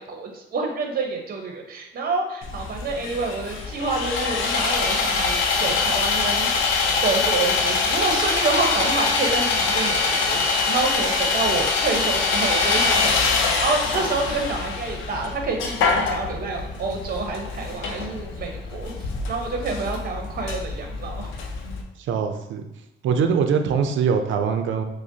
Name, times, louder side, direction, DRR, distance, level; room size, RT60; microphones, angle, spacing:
voice 1, 0.0-18.9 19.3-21.3, right 3 dB, 50° right, 3 dB, 0.8 m, -28 dB
Sawing, 2.4-21.8, left 4 dB, 80° left, 0.6 m, -24 dB
voice 2, 22.0-22.7 23.0-24.8, right 6 dB, 75° right, 6 dB, 0.5 m, -22 dB
4.9 x 2.1 x 2.7 m, 0.86 s
cardioid pair, 90°, 20 cm